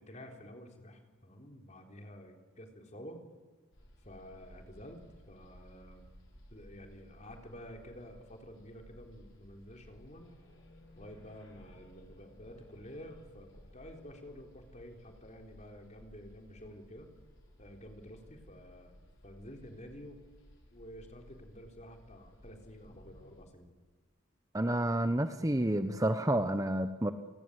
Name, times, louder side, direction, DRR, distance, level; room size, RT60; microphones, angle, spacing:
voice 1, 0.0-3.2 4.0-6.0 6.5-10.3 10.9-17.1 17.6-18.9 19.2-20.2 20.7-23.7, equal, 30° left, 3 dB, 3.9 m, -50 dB
sound 1, 3.7-23.4, equal, 60° left, 6.7 m, -58 dB
voice 2, 24.5-27.1, right 1 dB, 15° right, 9 dB, 0.9 m, -29 dB
30.0 x 19.0 x 8.1 m, 1.3 s
head